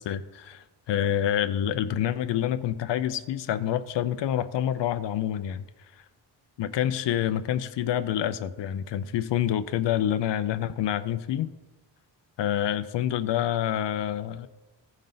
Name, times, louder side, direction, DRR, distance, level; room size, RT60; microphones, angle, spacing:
voice 1, 0.0-5.6 6.6-11.5 12.4-14.5, left 10 dB, 80° left, 11 dB, 0.5 m, -27 dB
14.5 x 5.3 x 3.8 m, 1.1 s
wide cardioid pair, 150°, 42 cm